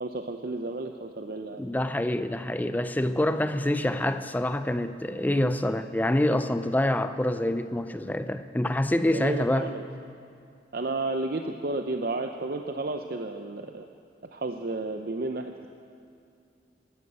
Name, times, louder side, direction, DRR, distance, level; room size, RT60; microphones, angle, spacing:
voice 1, 0.0-1.7 9.1-9.8 10.7-13.9 14.3-15.7, right 2 dB, 55° right, 5 dB, 0.6 m, -32 dB
voice 2, 1.6-9.7, left 1 dB, 10° left, 10 dB, 0.4 m, -26 dB
14.0 x 12.5 x 8.0 m, 2.5 s
head